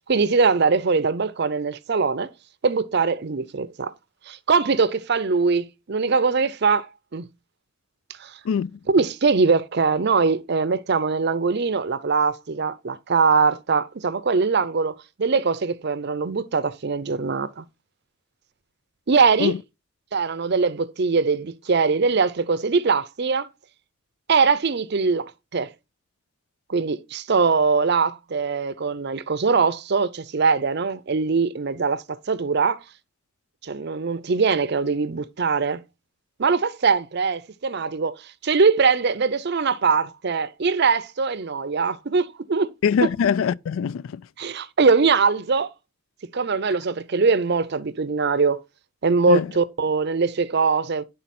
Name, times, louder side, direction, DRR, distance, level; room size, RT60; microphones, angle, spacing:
voice 1, 0.1-2.3 2.6-3.9 4.3-6.9 7.1-7.3 8.2-8.4 8.9-17.6 19.1-19.5 20.1-23.5 24.3-25.7 26.7-32.8 33.6-35.8 36.4-38.2 38.4-42.7 43.0-43.1 44.4-45.7 46.3-48.6 49.0-51.0, right 4 dB, 55° right, 0.6 m, -22 dB
voice 2, 42.8-44.2 49.3-49.5, left 7 dB, 70° left, 0.3 m, -22 dB
10.5 x 3.9 x 4.2 m
head